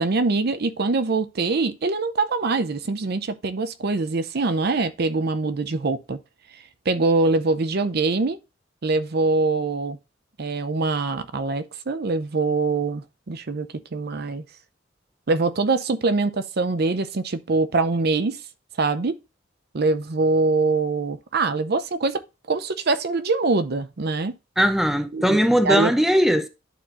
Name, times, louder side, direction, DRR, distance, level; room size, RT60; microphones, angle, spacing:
voice 1, 0.0-6.2 6.9-8.4 8.8-10.0 10.4-14.4 15.3-18.4 18.8-19.2 19.7-24.3 25.1-25.9, right 3 dB, 55° right, 0.6 m, -23 dB
voice 2, 24.6-26.5, equal, ahead, 0.6 m, -19 dB
11.0 x 4.3 x 2.5 m
head